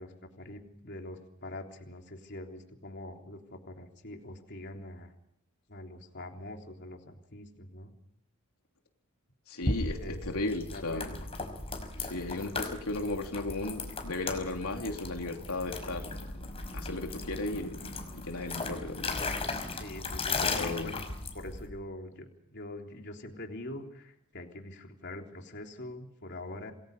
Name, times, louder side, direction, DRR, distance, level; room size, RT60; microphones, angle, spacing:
voice 1, 0.0-5.1 5.7-7.9 10.0-10.2 10.7-11.3 12.0-12.1 12.5-12.6 19.7-21.0 21.3-26.7, left 1 dB, 50° left, 3.5 m, -44 dB
voice 2, 9.5-11.2 12.0-16.5 16.7-17.9 18.1-19.2 19.5-19.8 20.4-20.9, left 2 dB, 75° left, 3.2 m, -36 dB
sound 1, 9.6-21.7, left 3 dB, 25° left, 5.5 m, -36 dB
28.0 x 21.0 x 5.5 m
head